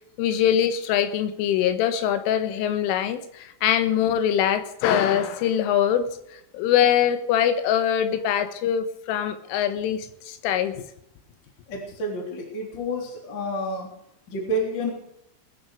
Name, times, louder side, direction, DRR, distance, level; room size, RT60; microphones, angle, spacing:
voice 1, 0.2-6.1 6.5-10.9, left 9 dB, 90° left, 10 dB, 3.8 m, -23 dB
voice 2, 11.7-13.9 14.3-14.9, equal, 25° left, 1 dB, 3.3 m, -29 dB
20.5 x 10.5 x 4.9 m, 0.76 s
omnidirectional pair, 5.5 m